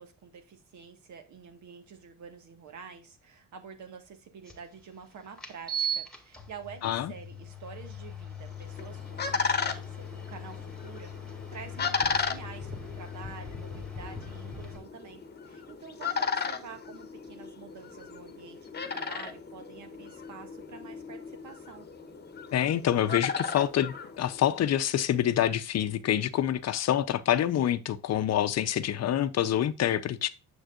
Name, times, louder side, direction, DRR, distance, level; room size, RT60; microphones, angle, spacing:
voice 1, 0.0-21.9, right 6 dB, 70° right, 1.7 m, -48 dB
sound 1, 4.5-4.6 5.4-14.8, right 1 dB, ahead, 1.8 m, -39 dB
voice 2, 6.8-7.1 22.5-30.3, left 11 dB, 60° left, 0.6 m, -26 dB
sound 2, 8.5-24.8, left 5 dB, 35° left, 1.0 m, -35 dB
7.1 x 6.4 x 2.5 m
cardioid pair, 90°, 30 cm